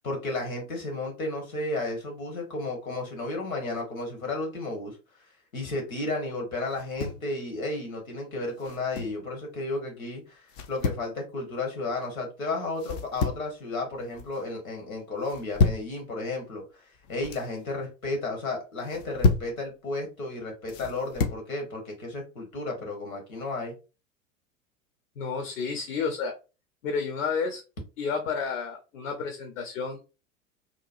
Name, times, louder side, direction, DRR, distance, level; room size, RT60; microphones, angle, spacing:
voice 1, 0.0-5.0 5.5-16.8 17.1-23.7, left 2 dB, 80° left, 2 dB, 1.2 m, -33 dB
sound 1, 6.7-7.3 8.6-9.2 10.5-11.1 12.8-13.5 13.9-14.4 15.2-15.9 17.0-17.5 18.8-19.6 20.7-21.4, left 4 dB, 35° left, 0.4 m, -29 dB
voice 2, 25.2-26.3 26.8-27.6 28.0-30.2, left 5 dB, 65° left, 5 dB, 0.7 m, -31 dB
2.9 x 2.3 x 2.4 m, 0.31 s
figure-of-eight pair, 85°, 41 cm